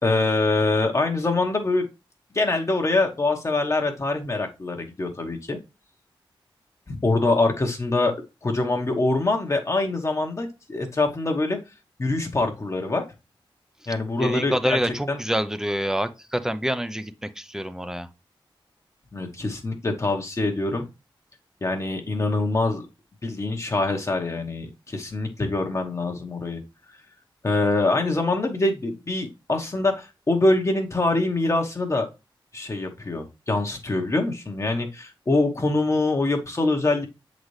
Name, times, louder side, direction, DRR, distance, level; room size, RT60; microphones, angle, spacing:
voice 1, 0.0-1.9 2.3-5.6 6.9-8.1 8.4-11.6 12.0-13.0 13.9-15.2 19.1-20.8 21.6-22.9 23.2-26.6 27.4-32.1 32.5-37.1, left 2 dB, 35° left, 1.0 m, -24 dB
voice 2, 14.2-18.1, equal, 5° right, 0.6 m, -27 dB
7.5 x 4.0 x 3.2 m
wide cardioid pair, 115°, 9 cm